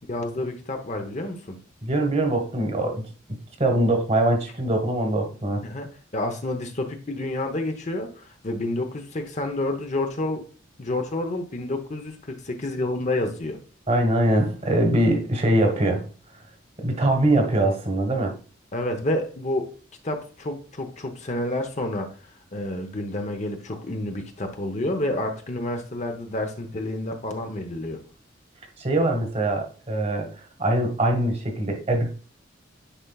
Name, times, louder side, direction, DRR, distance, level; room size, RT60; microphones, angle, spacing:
voice 1, 0.1-1.6 5.6-5.9 6.1-10.4 10.8-13.6 18.7-19.6 20.0-22.1 22.5-28.0, left 1 dB, 35° left, 5 dB, 0.9 m, -29 dB
voice 2, 1.8-3.0 3.6-5.6 13.9-16.0 16.8-18.3 28.8-30.3 30.6-32.1, right 1 dB, 35° right, 3 dB, 1.3 m, -22 dB
10.0 x 4.4 x 2.4 m, 0.38 s
head